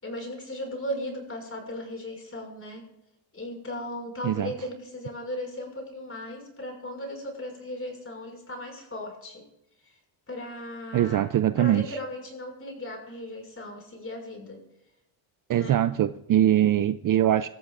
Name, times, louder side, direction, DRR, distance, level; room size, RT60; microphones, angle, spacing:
voice 1, 0.0-2.8 3.3-9.4 9.8-10.0 10.3-11.3 11.6-14.6 15.6-15.8, left 1 dB, 25° left, 1 dB, 6.0 m, -37 dB
voice 2, 10.9-12.0 15.5-17.5, right 11 dB, 45° right, 12 dB, 0.5 m, -22 dB
26.0 x 14.0 x 2.5 m, 0.84 s
cardioid pair, 115°, 49 cm